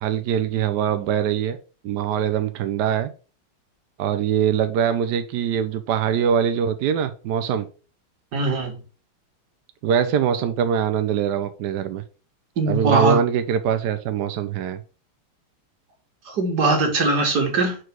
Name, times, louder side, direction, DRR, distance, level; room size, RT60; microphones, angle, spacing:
voice 1, 0.0-1.6 1.8-3.1 4.0-7.7 9.8-12.0 12.7-14.8, right 8 dB, 75° right, 0.9 m, -23 dB
voice 2, 8.3-8.8 12.6-13.2 16.3-17.8, right 3 dB, 50° right, 2.3 m, -21 dB
4.7 x 4.7 x 6.1 m
omnidirectional pair, 2.4 m